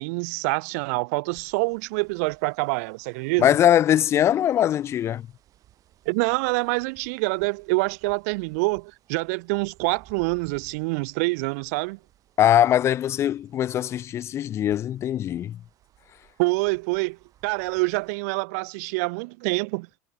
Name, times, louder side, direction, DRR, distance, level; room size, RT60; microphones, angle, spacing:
voice 1, 0.0-3.5 6.1-12.0 16.4-17.2 17.4-19.9, right 29 dB, 75° right, 0.4 m, -26 dB
sound 1, 1.3-18.1, right 12 dB, 40° right, 7.2 m, -59 dB
voice 2, 3.4-5.3 12.4-15.6, left 11 dB, 30° left, 0.4 m, -21 dB
supercardioid pair, 125°, 9 cm